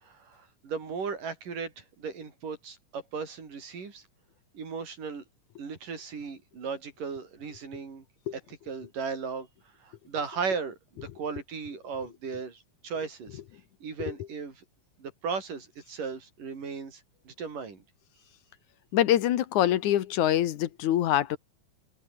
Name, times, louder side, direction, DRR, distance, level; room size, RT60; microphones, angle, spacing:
voice 1, 0.0-4.0 4.5-5.2 5.6-8.0 8.5-9.5 9.8-13.4 13.8-14.6 15.0-17.8, right 5 dB, 90° right, 6.3 m, -36 dB
voice 2, 18.9-21.4, left 12 dB, 70° left, 2.5 m, -24 dB
omnidirectional pair, 3.7 m